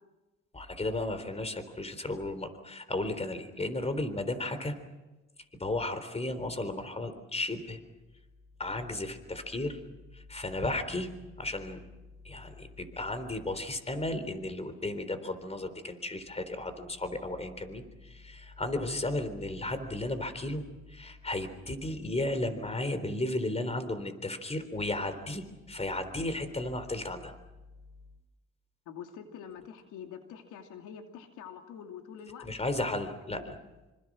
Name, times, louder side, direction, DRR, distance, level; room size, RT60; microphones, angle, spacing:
voice 1, 0.5-4.8 5.6-7.8 8.6-9.8 10.1-11.1 11.4-11.8 12.2-27.3 32.4-33.6, left 2 dB, 20° left, 11 dB, 3.7 m, -34 dB
voice 2, 28.9-33.5, left 8 dB, 90° left, 4 dB, 2.7 m, -46 dB
26.5 x 26.0 x 6.2 m, 1.1 s
cardioid pair, 90°, 30 cm